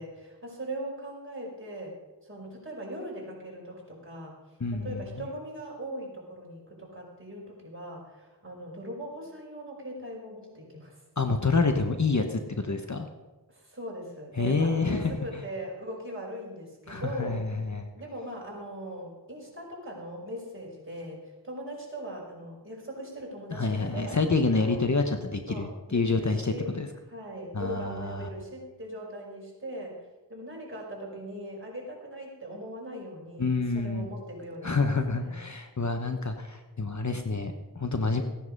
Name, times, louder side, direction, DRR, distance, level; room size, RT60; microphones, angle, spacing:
voice 1, 0.0-4.4 4.7-11.0 13.5-17.4 17.9-24.2 24.5-24.9 25.5-26.8 27.1-30.0 30.3-35.4, equal, 30° right, -3 dB, 5.1 m, -40 dB
voice 2, 4.6-5.0 11.2-13.1 14.4-15.2 16.9-17.9 23.5-26.9 27.5-28.3 33.4-34.1 34.6-38.2, left 3 dB, 40° left, 6 dB, 1.1 m, -28 dB
16.0 x 9.9 x 5.3 m, 1.2 s
wide cardioid pair, 60°, 42 cm